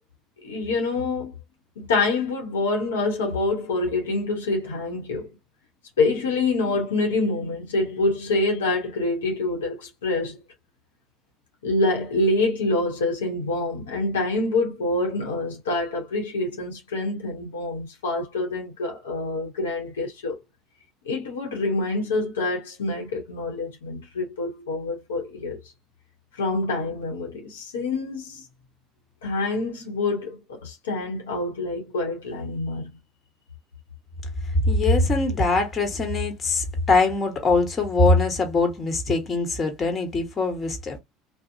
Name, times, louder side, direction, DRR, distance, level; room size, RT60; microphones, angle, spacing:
voice 1, 0.4-1.3 1.8-5.3 6.0-10.4 11.6-20.4 21.0-25.6 26.4-28.4 29.2-32.9, left 2 dB, 90° left, 0.8 m, -26 dB
voice 2, 34.7-41.0, left 3 dB, 30° left, 1.2 m, -22 dB
2.7 x 2.0 x 2.6 m
hypercardioid pair, 80°, 0 cm